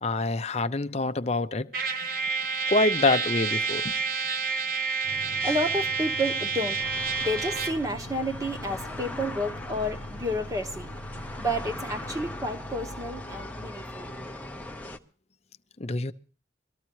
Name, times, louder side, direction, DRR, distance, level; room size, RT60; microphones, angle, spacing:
voice 1, 0.0-1.7 2.7-3.9 15.8-16.1, left 2 dB, 35° left, 0.6 m, -26 dB
Trumpet, 1.7-7.9, right 4 dB, 50° right, 1.1 m, -29 dB
voice 2, 5.0-14.1, equal, 20° right, 1.2 m, -31 dB
sound 1, 6.8-15.0, left 1 dB, 10° left, 0.8 m, -40 dB
23.0 x 14.0 x 3.1 m
head